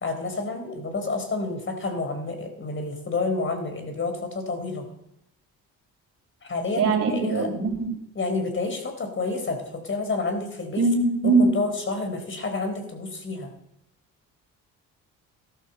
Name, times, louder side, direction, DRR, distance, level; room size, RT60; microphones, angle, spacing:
voice 1, 0.0-4.9 6.5-7.5 8.1-10.9 11.2-13.5, left 3 dB, 40° left, 6 dB, 4.1 m, -29 dB
voice 2, 6.8-7.9 10.8-11.5, right 3 dB, 50° right, -8 dB, 4.7 m, -21 dB
14.5 x 12.5 x 6.7 m, 0.77 s
cardioid pair, 85°, 32 cm